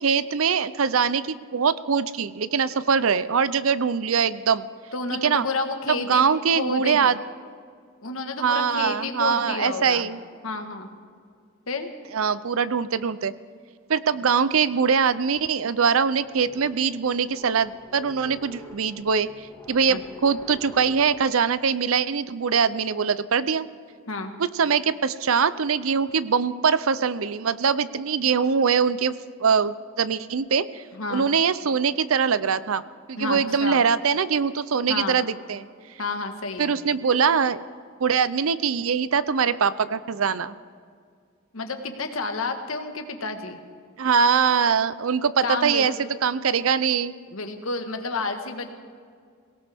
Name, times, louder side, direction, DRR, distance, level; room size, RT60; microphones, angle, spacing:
voice 1, 0.0-4.6 5.2-5.4 5.9-7.2 8.4-10.2 12.1-13.3 13.9-23.7 24.4-29.1 29.4-30.8 31.1-32.8 33.1-35.7 36.6-37.6 38.0-40.6 44.0-47.1, right 6 dB, 85° right, 16 dB, 0.6 m, -23 dB
voice 2, 4.9-6.3 6.5-7.1 8.0-10.1 10.4-10.9 11.7-11.9 19.9-20.0 24.1-24.3 30.9-31.3 33.2-33.8 34.9-35.2 36.0-36.8 41.5-43.6 45.4-45.9 47.3-48.7, left 3 dB, 90° left, 5 dB, 1.5 m, -30 dB
sound 1, 15.8-21.2, equal, 15° left, 1.8 m, -46 dB
22.5 x 18.0 x 3.6 m, 2.1 s
head